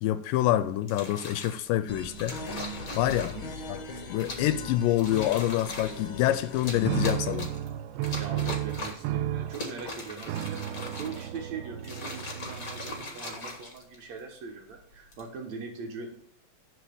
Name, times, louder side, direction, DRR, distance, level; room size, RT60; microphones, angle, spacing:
voice 1, 0.0-2.6 3.0-3.3 3.7-3.8 4.1-7.6, left 13 dB, 80° left, 2.1 m, -27 dB
sound 1, 0.9-1.6 2.2-3.5 4.2-4.6 4.9-6.0 6.5-7.7 8.0-9.1 9.5-11.4 11.8-14.2 14.9-15.3, left 2 dB, 40° left, 1.3 m, -40 dB
sound 2, 1.9-7.1, left 2 dB, 60° left, 1.4 m, -39 dB
voice 2, 3.1-3.5 8.2-16.2, right 5 dB, 60° right, 2.4 m, -41 dB
sound 3, 6.8-13.3, right 12 dB, 90° right, 2.3 m, -33 dB
10.5 x 4.8 x 6.7 m
omnidirectional pair, 4.1 m